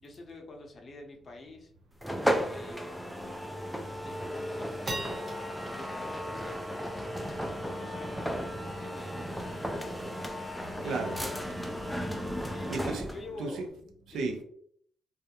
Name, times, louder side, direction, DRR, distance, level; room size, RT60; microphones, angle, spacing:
voice 1, 0.0-1.7 2.4-3.0 4.0-5.2 5.7-10.0 10.8-11.6 12.4-12.7 13.1-13.6, left 2 dB, 40° left, 0.6 m, -47 dB
sound 1, 1.3-1.4 1.7-1.8 2.2-2.5 2.9-3.0 3.6-3.9 4.4-11.0, right 1 dB, 30° right, 0.7 m, -45 dB
sound 2, 2.0-13.3, equal, ahead, 0.3 m, -35 dB
sound 3, 6.9-13.7, left 2 dB, 80° left, 0.6 m, -53 dB
voice 2, 10.8-11.2 12.1-13.1 13.4-13.7 14.1-14.4, right 3 dB, 75° right, 0.5 m, -35 dB
2.3 x 2.1 x 2.8 m
cardioid pair, 90°, 0 cm